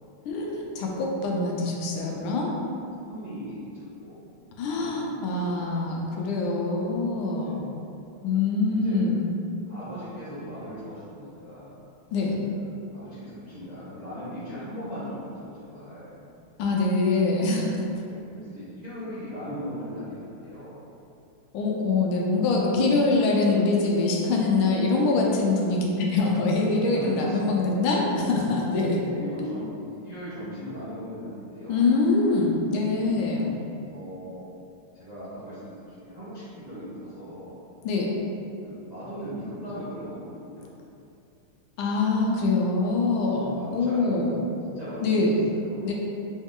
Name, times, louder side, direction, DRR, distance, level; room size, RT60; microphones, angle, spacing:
voice 1, 0.3-2.5 4.6-7.6 8.2-9.3 12.1-12.4 16.6-17.6 21.5-29.0 31.7-33.5 37.8-38.2 41.8-44.4 45.0-45.4 45.8-45.9, left 3 dB, 80° left, -2 dB, 1.5 m, -24 dB
voice 2, 3.0-5.9 7.2-7.7 8.6-9.0 9.7-11.7 12.4-16.1 17.9-20.8 26.8-27.7 28.7-31.9 33.0-33.3 33.9-34.5 34.9-37.6 38.6-40.7 43.2-44.4 44.7-45.9, equal, 55° right, -13 dB, 0.4 m, -39 dB
3.9 x 3.1 x 3.6 m, 2.7 s
omnidirectional pair, 2.4 m